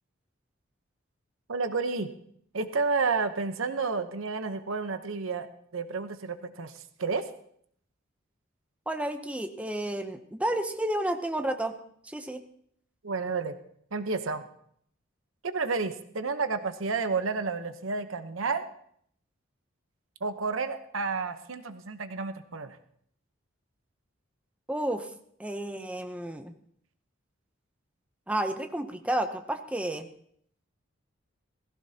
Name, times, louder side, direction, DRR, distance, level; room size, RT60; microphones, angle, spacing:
voice 1, 1.5-2.1 2.5-5.5 5.7-7.2 13.0-13.5 13.9-14.4 15.4-18.6 20.2-22.8, right 4 dB, 85° right, 9 dB, 0.9 m, -30 dB
voice 2, 8.9-11.7 12.0-12.4 24.7-25.1 25.4-26.5 28.3-30.1, right 1 dB, 5° right, 6 dB, 0.7 m, -31 dB
17.0 x 15.5 x 2.8 m, 0.65 s
head